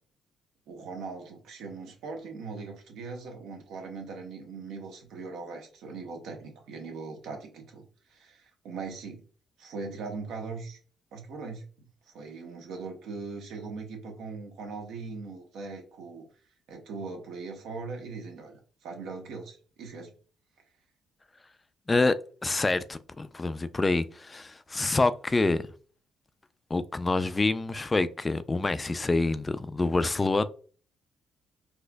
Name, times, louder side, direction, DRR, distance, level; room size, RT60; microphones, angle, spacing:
voice 1, 0.7-7.8 8.1-9.2 9.6-10.8 11.1-11.9 12.1-16.2 16.7-20.1, right 4 dB, 80° right, 1.0 m, -40 dB
voice 2, 21.9-25.7 26.7-30.4, left 3 dB, 25° left, 0.3 m, -27 dB
4.2 x 2.5 x 2.2 m
cardioid pair, 80°, 0 cm